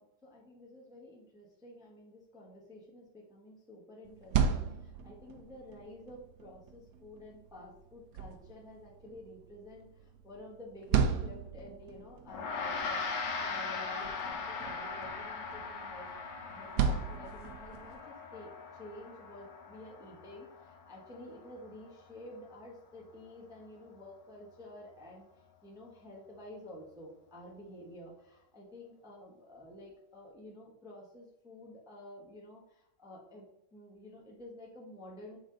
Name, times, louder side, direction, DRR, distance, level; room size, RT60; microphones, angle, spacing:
voice 1, 0.0-16.1 16.4-25.2 25.6-35.4, left 1 dB, 5° right, -2 dB, 0.6 m, -51 dB
sound 1, 4.0-18.0, right 7 dB, 85° right, 0.7 m, -37 dB
Gong, 12.3-21.9, left 4 dB, 75° left, 1.7 m, -40 dB
7.4 x 4.0 x 3.8 m, 0.85 s
omnidirectional pair, 2.3 m